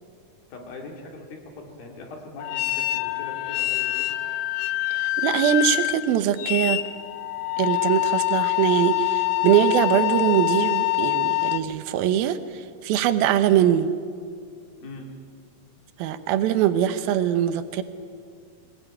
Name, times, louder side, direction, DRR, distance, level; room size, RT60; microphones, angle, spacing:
voice 1, 0.5-4.1 14.8-15.1, left 2 dB, 70° left, 1 dB, 4.3 m, -41 dB
sound 1, 2.4-11.6, left 18 dB, 85° left, 1.6 m, -25 dB
voice 2, 4.9-6.8 7.6-13.9 16.0-17.8, right 10 dB, 75° right, 11 dB, 2.7 m, -22 dB
21.5 x 19.0 x 8.8 m, 2.2 s
omnidirectional pair, 4.4 m